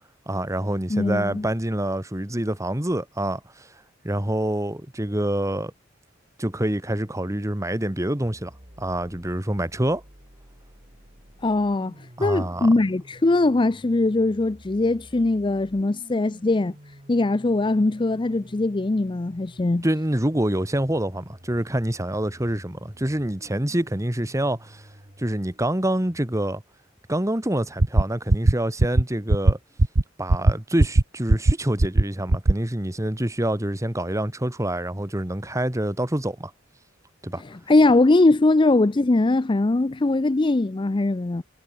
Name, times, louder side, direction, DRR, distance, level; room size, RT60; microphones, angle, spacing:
voice 1, 0.3-3.7 4.0-5.7 6.4-8.5 8.8-10.0 12.2-12.7 19.8-24.8 25.2-26.6 27.1-29.6 30.2-36.5 37.2-37.4, right 1 dB, 15° right, 1.7 m, -26 dB
voice 2, 0.9-1.4 11.4-11.9 12.2-16.7 17.1-19.8 37.7-41.4, left 2 dB, 25° left, 0.5 m, -21 dB
sound 1, 8.2-26.2, equal, 35° right, 7.0 m, -50 dB
sound 2, 27.8-28.0 28.3-28.5 28.8-29.0 29.3-29.5 29.8-30.0 30.3-30.5 30.8-31.0 31.3-31.5 31.8-32.0 32.3-32.5, right 2 dB, 70° right, 1.2 m, -16 dB
head